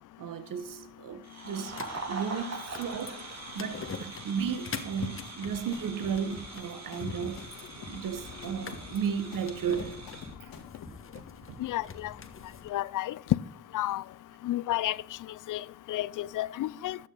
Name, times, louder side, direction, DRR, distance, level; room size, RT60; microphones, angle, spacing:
voice 1, 0.2-1.7 2.0-3.2 3.5-7.4 7.8-10.0 10.4-10.6 11.2-11.3 11.5-11.6, right 7 dB, 70° right, 1.2 m, -34 dB
sound 1, 1.2-10.3, right 3 dB, 50° right, 3.3 m, -43 dB
sound 2, 1.7-12.7, left 5 dB, 35° left, 1.4 m, -44 dB
sound 3, 5.4-10.9, left 3 dB, 85° left, 2.1 m, -48 dB
voice 2, 11.6-12.1 12.7-13.1 13.7-14.0 14.4-15.0 15.5-17.0, left 15 dB, 65° left, 0.5 m, -31 dB
12.0 x 6.9 x 3.9 m
supercardioid pair, 60°, 34 cm